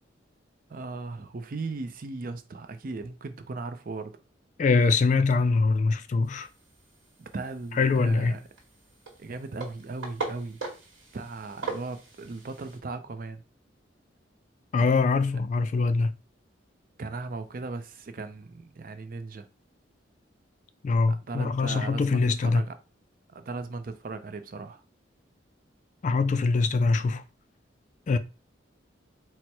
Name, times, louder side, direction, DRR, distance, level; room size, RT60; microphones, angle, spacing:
voice 1, 0.7-4.2 7.2-8.4 9.2-10.6 11.1-13.4 17.0-19.5 21.1-22.7 23.3-24.8, right 3 dB, 50° right, 0.5 m, -37 dB
voice 2, 4.6-6.5 7.8-8.4 14.7-16.1 20.8-22.6 26.0-27.2 28.1-28.2, left 4 dB, 40° left, 0.3 m, -23 dB
sound 1, 6.2-12.8, right 3 dB, 90° right, 1.3 m, -41 dB
4.3 x 2.1 x 4.5 m
head